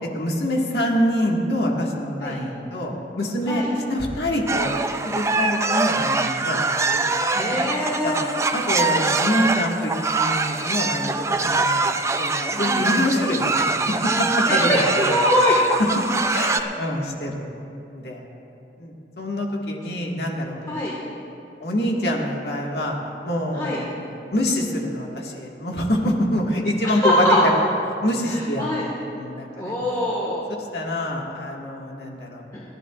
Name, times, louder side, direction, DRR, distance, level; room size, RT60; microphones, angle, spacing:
voice 1, 0.0-3.6 3.9-4.7 5.0-6.6 6.9-7.6 8.0-8.2 8.5-11.9 12.2-14.7 15.1-15.6 16.0-16.1 16.3-17.5 17.9-18.3 18.8-20.9 21.6-23.0 23.2-27.5 28.0-28.8 29.1-29.7 30.6-32.5, left 1 dB, 70° left, -1 dB, 1.8 m, -26 dB
sound 1, 4.5-16.6, right 3 dB, 15° right, 0.4 m, -23 dB
voice 2, 7.3-8.3 12.5-12.8 14.5-15.6 20.7-20.9 23.5-23.8 27.0-27.4 28.6-28.9 29.6-30.4 32.5-32.6, equal, 20° left, -6 dB, 1.6 m, -23 dB
30.0 x 10.5 x 2.5 m, 2.8 s
head